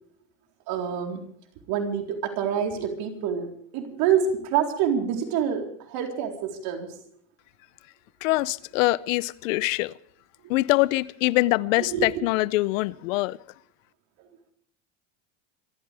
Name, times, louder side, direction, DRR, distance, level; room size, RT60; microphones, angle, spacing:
voice 1, 0.7-1.2 1.7-7.0 10.4-10.5 11.8-12.3, right 8 dB, 65° right, 2 dB, 4.1 m, -27 dB
voice 2, 8.2-9.9 10.5-13.4, left 19 dB, 80° left, 21 dB, 0.7 m, -24 dB
26.5 x 14.0 x 3.5 m, 0.62 s
supercardioid pair, 100°, 39 cm